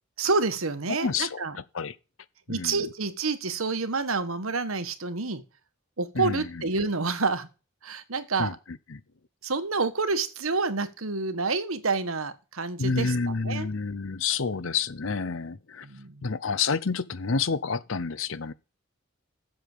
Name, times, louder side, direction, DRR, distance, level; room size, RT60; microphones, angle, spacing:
voice 1, 0.2-1.5 2.5-5.4 6.0-7.5 7.8-8.6 9.4-13.1 13.4-13.7 15.8-16.3, right 4 dB, 85° right, 1.4 m, -28 dB
voice 2, 0.9-2.0 2.5-2.8 6.1-6.7 8.4-9.0 12.8-15.9 16.2-18.5, left 5 dB, 70° left, 0.8 m, -29 dB
7.8 x 7.3 x 6.6 m
head